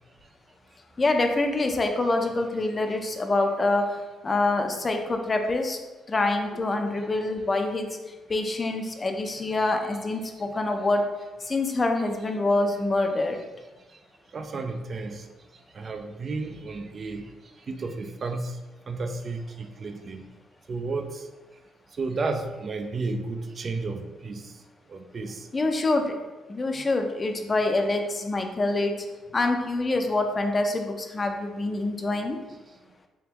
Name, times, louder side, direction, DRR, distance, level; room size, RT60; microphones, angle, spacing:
voice 1, 1.0-3.9 4.2-5.8 6.1-7.9 8.3-11.0 11.5-13.4 25.5-26.1 26.5-28.9 29.3-32.4, left 2 dB, 30° left, 4 dB, 0.5 m, -25 dB
voice 2, 14.3-15.2 15.7-17.2 17.7-18.6 18.9-20.3 20.7-21.2 22.0-24.5 24.9-25.5, right 3 dB, 45° right, 6 dB, 0.3 m, -32 dB
3.5 x 3.4 x 2.9 m, 1.2 s
cardioid pair, 90°, 0 cm